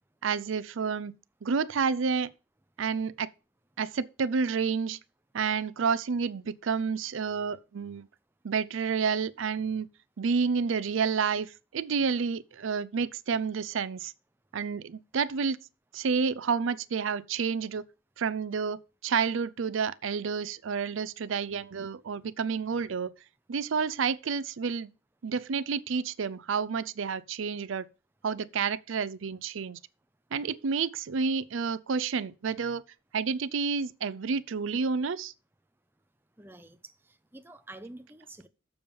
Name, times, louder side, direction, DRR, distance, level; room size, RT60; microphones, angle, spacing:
voice 1, 0.2-2.3 2.8-3.3 3.8-5.0 5.3-8.1 8.4-9.9 10.2-14.1 14.5-15.6 15.9-17.8 18.2-23.1 23.5-24.9 25.2-27.9 28.2-29.8 30.3-32.8 33.1-35.3, right 5 dB, 80° right, 0.5 m, -30 dB
voice 2, 36.4-36.8 37.1-38.5, right 2 dB, 10° right, 0.6 m, -48 dB
7.0 x 6.9 x 5.3 m
head